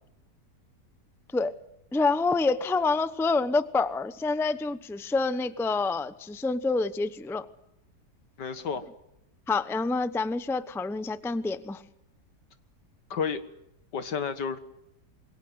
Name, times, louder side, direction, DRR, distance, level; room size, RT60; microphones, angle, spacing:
voice 1, 1.9-7.5 9.5-11.8, left 3 dB, 5° left, 13 dB, 0.5 m, -27 dB
voice 2, 8.4-8.8 13.1-13.4 13.9-14.6, left 6 dB, 85° left, 11 dB, 2.2 m, -31 dB
26.5 x 22.5 x 8.0 m, 0.84 s
omnidirectional pair, 1.8 m